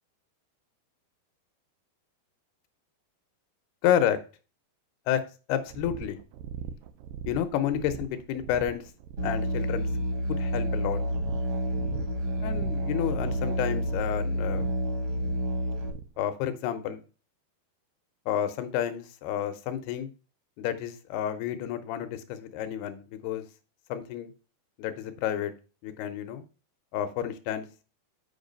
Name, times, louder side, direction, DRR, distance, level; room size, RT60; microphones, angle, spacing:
voice 1, 3.8-4.2 5.1-5.2 5.5-6.2 7.3-8.8 9.2-9.9 10.3-11.0 12.4-14.7 16.2-17.0 18.3-20.1 20.6-23.4 23.9-24.3 24.8-25.5 25.8-26.4 26.9-27.7, left 10 dB, 75° left, 9 dB, 2.6 m, -30 dB
sound 1, 5.7-16.2, right 8 dB, 80° right, 2.5 m, -41 dB
Musical instrument, 9.2-15.9, equal, 55° right, 1.3 m, -29 dB
8.0 x 4.8 x 5.2 m, 0.35 s
omnidirectional pair, 4.9 m